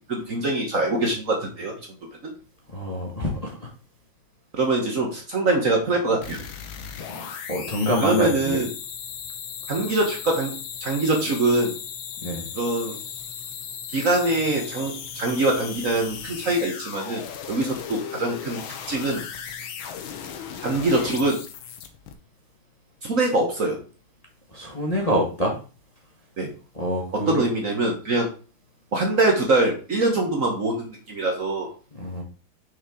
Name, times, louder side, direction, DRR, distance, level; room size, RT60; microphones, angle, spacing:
voice 1, 0.1-1.7 2.2-2.3 4.5-6.4 8.0-8.7 9.7-10.5 10.8-11.7 12.5-13.0 13.9-18.6 18.9-19.2 20.6-21.4 23.0-23.8 26.4-26.5 27.1-28.3 28.9-31.7, right 2 dB, 45° right, 1.4 m, -23 dB
voice 2, 2.7-3.7 7.1-8.6 12.2-12.5 24.5-25.6 26.7-27.4 31.9-32.2, equal, 20° left, 1.2 m, -26 dB
sound 1, 6.2-22.1, left 8 dB, 80° left, 1.6 m, -37 dB
6.3 x 5.7 x 3.8 m
omnidirectional pair, 2.2 m